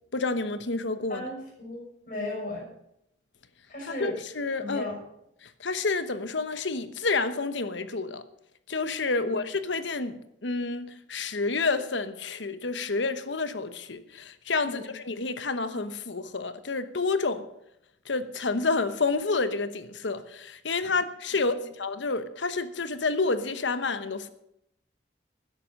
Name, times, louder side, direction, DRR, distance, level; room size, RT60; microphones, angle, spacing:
voice 1, 0.1-1.2 3.8-4.9 5.4-8.2 8.7-17.4 18.1-24.3, left 3 dB, 80° left, 1.1 m, -29 dB
voice 2, 1.1-2.7 3.7-4.2 4.6-5.0 9.2-9.4 14.7-14.9 21.5-21.7, left 2 dB, 45° left, 6.3 m, -36 dB
12.5 x 10.5 x 6.5 m
head